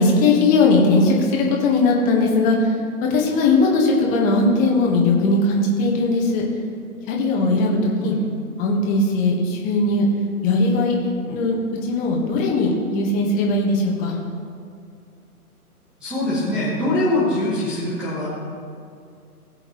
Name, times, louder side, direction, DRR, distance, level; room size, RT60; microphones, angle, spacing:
voice 1, 0.0-2.7 3.0-6.4 7.1-8.1 8.6-10.0 10.4-11.0 11.3-11.6 11.8-14.2, left 3 dB, 15° left, -1 dB, 1.4 m, -19 dB
voice 2, 16.0-18.3, left 1 dB, ahead, -9 dB, 0.6 m, -23 dB
19.0 x 7.8 x 3.2 m, 2.4 s
hypercardioid pair, 140°, 46 cm